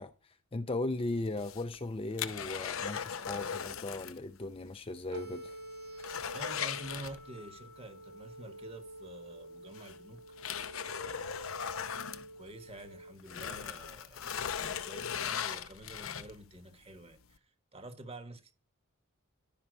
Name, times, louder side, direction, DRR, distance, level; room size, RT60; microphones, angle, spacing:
voice 1, 0.0-5.6, left 2 dB, 25° left, 0.5 m, -37 dB
sound 1, 1.3-4.2 4.5-4.6 5.1-5.2 5.5-7.6 9.0-9.1 9.7-12.9 13.2-16.5 17.1-17.2, left 8 dB, 70° left, 0.7 m, -38 dB
sound 2, 5.1-13.1, right 1 dB, 85° right, 5.5 m, -48 dB
voice 2, 5.9-10.6 11.0-18.5, right 1 dB, 25° right, 1.3 m, -49 dB
11.0 x 5.7 x 6.2 m
head